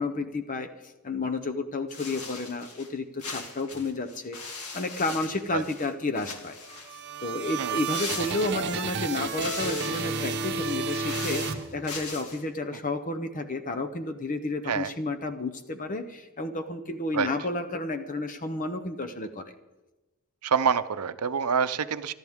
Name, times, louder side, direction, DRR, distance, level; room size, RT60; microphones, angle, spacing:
voice 1, 0.0-4.4 4.7-6.6 6.9-19.5, left 2 dB, 35° left, 7 dB, 0.7 m, -31 dB
sound 1, 1.9-2.9 3.2-5.9 6.2-7.0 7.9-8.9 9.3-10.2 10.8-12.4, left 4 dB, 90° left, 2.3 m, -39 dB
sound 2, 6.6-12.2, right 4 dB, 50° right, 0.9 m, -32 dB
voice 2, 20.4-22.1, right 6 dB, 90° right, 12 dB, 0.7 m, -26 dB
25.0 x 12.0 x 3.6 m, 1.1 s
head